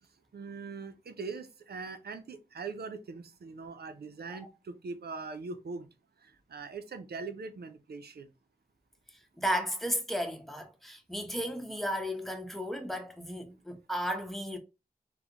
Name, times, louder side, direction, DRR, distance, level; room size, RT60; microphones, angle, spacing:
voice 1, 0.0-5.9 6.2-8.3, right 4 dB, 90° right, 0.5 m, -42 dB
voice 2, 9.4-14.6, equal, ahead, 0.8 m, -34 dB
3.8 x 2.1 x 2.8 m
cardioid pair, 45°, 16 cm